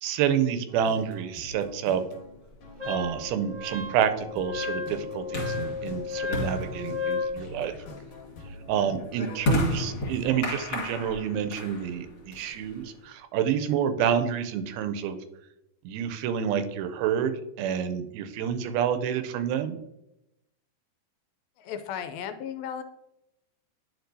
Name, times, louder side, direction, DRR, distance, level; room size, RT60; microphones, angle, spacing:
voice 1, 0.0-2.0 2.8-7.7 8.7-15.2 15.8-19.8, right 8 dB, 85° right, 9 dB, 2.4 m, -28 dB
sound 1, 0.7-9.2, left 2 dB, 60° left, 1.8 m, -46 dB
sound 2, 2.6-13.0, left 2 dB, 35° left, 2.3 m, -34 dB
Wind instrument woodwind instrument, 2.8-7.4, left 5 dB, 30° right, 1.3 m, -33 dB
voice 2, 21.6-22.8, left 8 dB, 80° left, 8 dB, 2.3 m, -35 dB
10.5 x 4.8 x 2.7 m, 0.87 s
omnidirectional pair, 4.3 m